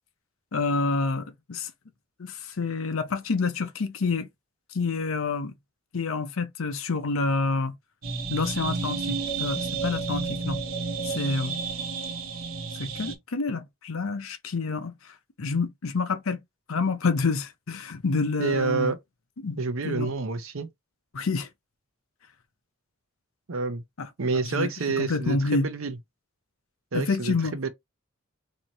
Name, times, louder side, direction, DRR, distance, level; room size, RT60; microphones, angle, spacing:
voice 1, 0.5-1.7 2.2-4.3 4.7-5.5 5.9-7.7 8.3-10.6 11.0-11.6 12.8-14.9 15.4-16.4 16.7-18.9 19.4-19.6 19.8-20.1 21.1-21.5 24.0-24.1 24.5-24.7 25.0-25.7 26.9-27.5, left 3 dB, 75° left, 0.7 m, -28 dB
sound 1, 8.0-13.2, right 4 dB, 85° right, 1.0 m, -31 dB
voice 2, 18.4-19.0 19.6-20.7 23.5-23.8 24.2-26.0 26.9-27.7, right 4 dB, 70° right, 0.7 m, -28 dB
3.1 x 2.8 x 4.0 m
head